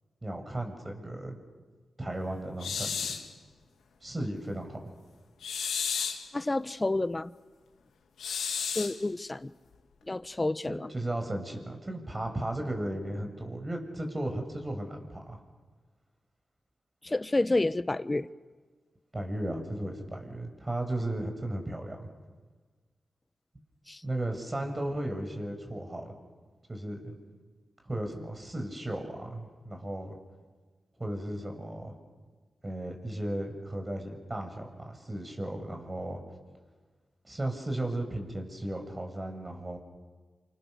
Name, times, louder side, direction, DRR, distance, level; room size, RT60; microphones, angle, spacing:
voice 1, 0.2-1.4 2.0-3.2 4.0-4.8 10.7-15.4 19.1-22.1 24.0-26.2 26.7-27.1 27.8-30.2 31.0-31.9 32.6-36.2 37.2-39.8, right 1 dB, 30° right, 6.9 m, -35 dB
sound 1, 2.6-3.3 5.4-6.3 8.2-9.0, left 6 dB, 90° left, 2.4 m, -32 dB
voice 2, 6.3-7.3 8.7-9.5 10.1-10.9 17.0-18.3 23.9-24.0, left 2 dB, 30° left, 1.0 m, -29 dB
28.5 x 28.0 x 6.9 m
cardioid pair, 45°, 0 cm